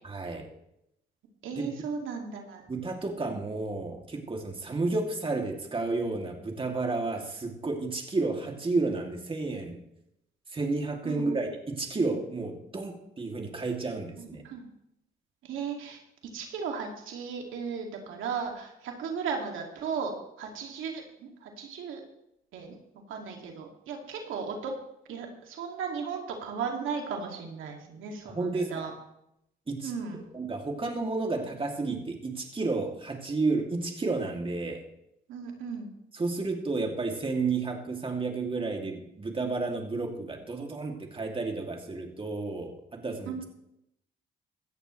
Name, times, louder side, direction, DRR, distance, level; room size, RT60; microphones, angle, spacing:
voice 1, 0.0-0.5 1.5-1.7 2.7-9.8 10.5-14.4 28.2-28.9 29.7-29.9 30.3-34.8 36.1-43.4, right 3 dB, 25° right, 2 dB, 2.7 m, -31 dB
voice 2, 1.4-2.6 11.0-11.4 14.2-14.6 15.4-16.0 16.3-22.0 22.5-22.8 23.1-24.7 25.1-28.9 29.8-30.2 35.3-35.9 43.3-43.4, right 6 dB, 85° right, 1 dB, 2.5 m, -36 dB
17.0 x 13.5 x 3.3 m, 0.79 s
cardioid pair, 90°, 20 cm